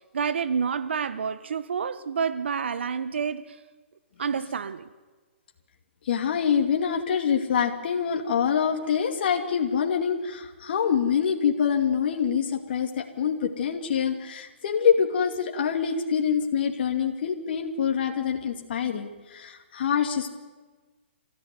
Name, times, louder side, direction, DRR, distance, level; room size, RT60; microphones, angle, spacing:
voice 1, 0.1-3.6 4.2-4.9, right 6 dB, 65° right, 1.2 m, -28 dB
voice 2, 6.0-20.3, left 7 dB, 55° left, 2.5 m, -25 dB
27.5 x 15.0 x 9.6 m
hypercardioid pair, 135°, 6 cm